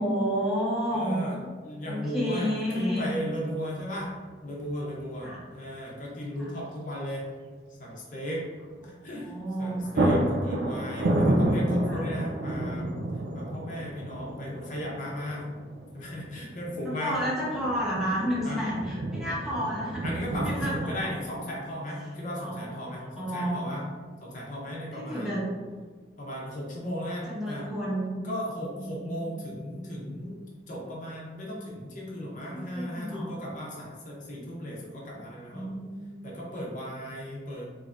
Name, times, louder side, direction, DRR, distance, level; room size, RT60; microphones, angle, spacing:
voice 1, 0.0-1.2 1.9-3.1 5.2-5.4 6.3-6.6 8.8-8.9 9.2-9.9 11.8-12.1 16.8-21.1 22.4-23.6 24.9-25.4 27.3-28.2 28.7-29.4 32.5-33.3 35.5-36.2, equal, ahead, -7 dB, 0.9 m, -31 dB
voice 2, 0.9-1.4 1.6-4.1 4.4-7.3 7.8-8.5 8.8-9.3 9.6-12.9 13.3-15.5 15.9-17.2 18.4-18.6 20.0-23.8 24.2-25.3 26.2-27.6 28.2-30.4 30.7-35.8 36.2-37.6, equal, 45° left, -3 dB, 0.7 m, -36 dB
sound 1, 4.7-5.1 5.4-5.5 9.2-9.4 9.6-21.0, right 1 dB, 70° right, 0.4 m, -30 dB
3.4 x 3.1 x 2.5 m, 1.5 s
head